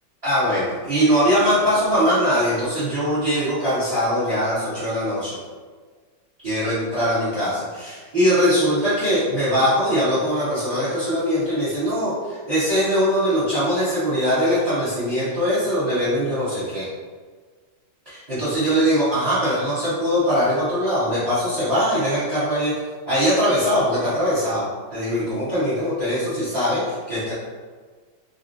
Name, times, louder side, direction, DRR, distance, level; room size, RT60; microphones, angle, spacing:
voice 1, 0.2-5.4 6.4-16.9 18.0-22.7 23.1-24.6 24.9-27.3, equal, 30° right, -14 dB, 0.8 m, -21 dB
3.8 x 2.0 x 2.6 m, 1.5 s
omnidirectional pair, 2.2 m